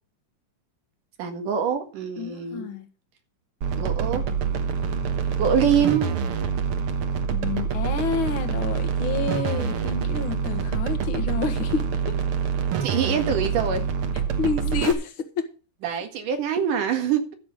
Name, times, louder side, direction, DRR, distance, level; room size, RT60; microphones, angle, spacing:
voice 1, 1.2-2.7 3.8-4.2 5.4-6.1 12.8-13.8 15.8-17.3, right 7 dB, 75° right, 3.4 m, -24 dB
voice 2, 2.2-2.9 7.3-12.2 14.4-15.5, left 5 dB, 50° left, 1.8 m, -29 dB
sound 1, 3.6-14.9, right 6 dB, 55° right, 1.7 m, -26 dB
13.0 x 6.7 x 6.5 m
omnidirectional pair, 3.8 m